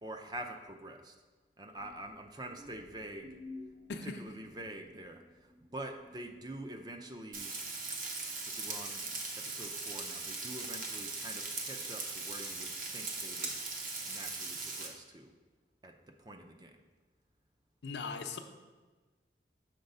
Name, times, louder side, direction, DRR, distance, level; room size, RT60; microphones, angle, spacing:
voice 1, 0.0-1.1 1.6-3.4 4.0-7.5 8.4-9.1 9.4-13.5 14.1-15.3 15.8-16.8, right 1 dB, 25° right, 5 dB, 0.4 m, -46 dB
sound 1, 1.7-7.4, left 2 dB, 65° right, 2.0 m, -53 dB
Frying (food), 7.3-14.9, right 3 dB, 50° right, 0.9 m, -39 dB
voice 2, 17.8-18.4, left 4 dB, 80° left, 6 dB, 0.6 m, -39 dB
6.6 x 4.0 x 5.4 m, 1.3 s
head